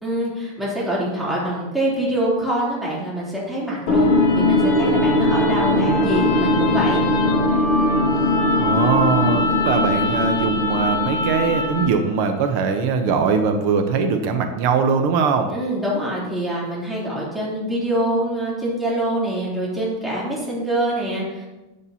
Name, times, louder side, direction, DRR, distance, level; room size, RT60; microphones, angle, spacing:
voice 1, 0.0-7.0 15.5-21.5, right 1 dB, ahead, -7 dB, 2.8 m, -25 dB
sound 1, 3.9-12.1, left 2 dB, 85° left, 2.4 m, -19 dB
voice 2, 8.6-15.5, right 5 dB, 85° right, 6 dB, 1.7 m, -21 dB
11.0 x 8.7 x 2.8 m, 1.0 s
omnidirectional pair, 2.4 m